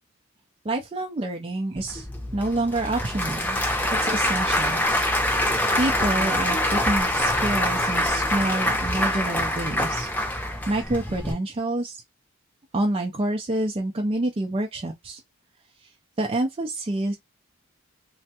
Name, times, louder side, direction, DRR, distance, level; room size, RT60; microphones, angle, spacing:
voice 1, 0.6-2.1 2.3-3.6 4.0-4.8 5.8-10.4 10.7-12.0 12.7-15.2 16.2-17.2, right 2 dB, 30° right, 0.4 m, -27 dB
Applause / Crowd, 1.8-11.3, left 1 dB, 10° left, 0.7 m, -25 dB
3.4 x 2.1 x 2.8 m
head